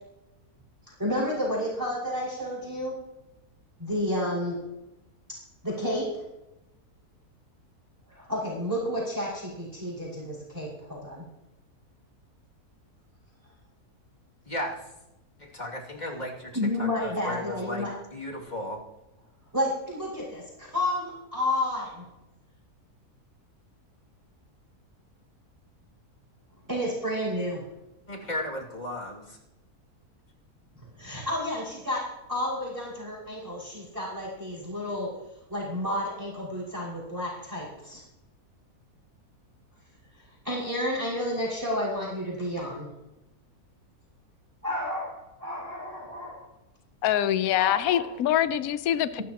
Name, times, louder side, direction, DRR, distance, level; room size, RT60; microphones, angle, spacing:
voice 1, 1.0-3.0 3.8-4.6 5.6-6.2 8.1-11.2 16.5-17.9 19.5-22.0 26.7-27.7 31.0-35.2 35.5-38.0 40.1-42.9 44.6-46.5 47.6-48.1, left 1 dB, 10° right, -6 dB, 5.6 m, -31 dB
voice 2, 14.5-14.8 15.4-16.5 16.8-18.8 28.1-29.4, left 1 dB, 30° left, -1 dB, 2.7 m, -35 dB
voice 3, 47.0-49.2, left 11 dB, 70° left, 12 dB, 1.2 m, -24 dB
27.0 x 12.0 x 3.0 m, 0.96 s
omnidirectional pair, 1.7 m